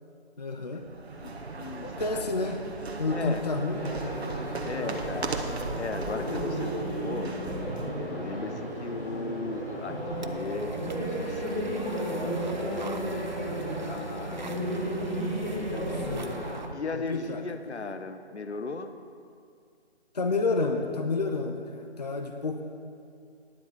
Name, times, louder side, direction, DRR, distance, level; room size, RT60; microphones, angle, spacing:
voice 1, 0.4-0.9 1.8-2.6 3.0-3.9 16.1-16.5 16.9-17.8 20.1-22.6, left 3 dB, 40° left, 5 dB, 0.6 m, -30 dB
sound 1, 0.8-7.9, right 3 dB, 65° right, 1.2 m, -37 dB
voice 2, 1.2-2.5 3.1-3.4 4.6-5.4 5.8-7.4 7.9-14.4 15.2-16.2 16.7-18.9, left 3 dB, 80° left, 8 dB, 1.0 m, -38 dB
sound 2, 3.7-16.6, right 1 dB, 20° left, 2.7 m, -33 dB
sound 3, 10.1-16.7, right 3 dB, 45° right, 0.5 m, -42 dB
10.5 x 7.5 x 6.9 m, 2.3 s
figure-of-eight pair, 170°, 33 cm